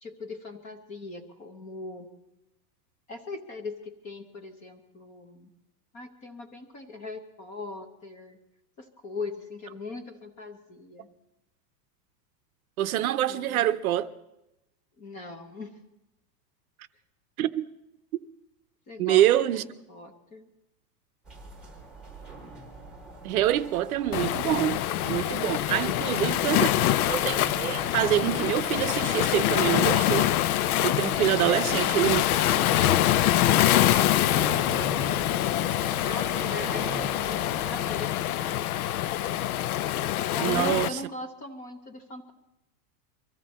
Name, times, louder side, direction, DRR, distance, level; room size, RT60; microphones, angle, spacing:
voice 1, 0.0-2.1 3.1-5.5 5.9-8.4 8.8-11.1 13.3-13.7 15.0-15.7 18.9-20.5 31.2-32.0 35.1-38.6 40.3-42.3, left 3 dB, 15° left, 0.7 m, -40 dB
voice 2, 12.8-14.1 17.4-17.7 19.0-19.6 23.2-26.7 27.1-30.3 30.8-32.2 40.4-41.0, right 13 dB, 60° right, 0.8 m, -26 dB
sound 1, 21.2-38.0, right 2 dB, ahead, 1.1 m, -43 dB
Waves surf, 24.1-40.9, left 13 dB, 60° left, 0.6 m, -25 dB
23.5 x 14.5 x 4.2 m
supercardioid pair, 175°, 49 cm